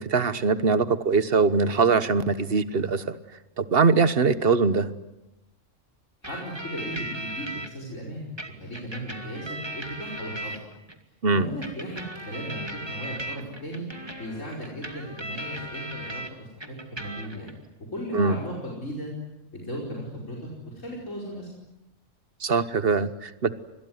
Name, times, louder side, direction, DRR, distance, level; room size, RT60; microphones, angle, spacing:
voice 1, 0.0-3.1 3.6-4.9 11.2-11.4 18.1-18.3 22.4-23.6, right 4 dB, 50° right, 13 dB, 1.4 m, -22 dB
voice 2, 6.2-8.3 8.6-10.6 11.3-13.9 14.2-17.5 17.9-19.1 19.5-21.5, equal, 80° left, -3 dB, 5.4 m, -36 dB
sound 1, 6.2-7.7 8.4-11.0 11.6-16.3 16.6-17.5, right 1 dB, 20° right, 2.4 m, -37 dB
26.0 x 21.5 x 9.5 m, 0.96 s
omnidirectional pair, 1.3 m